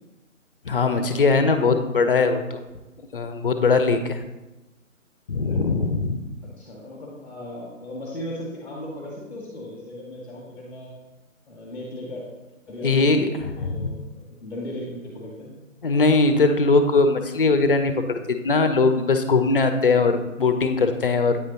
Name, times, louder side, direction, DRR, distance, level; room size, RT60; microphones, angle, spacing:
voice 1, 0.6-2.6 3.1-4.2 5.3-6.2 12.8-13.9 15.8-18.0 18.4-21.4, left 3 dB, 45° left, 8 dB, 0.5 m, -20 dB
voice 2, 6.4-10.9 11.5-12.2 12.7-15.5, left 1 dB, 5° left, -4 dB, 0.8 m, -37 dB
8.7 x 3.3 x 4.0 m, 1.1 s
figure-of-eight pair, 145°, 40 cm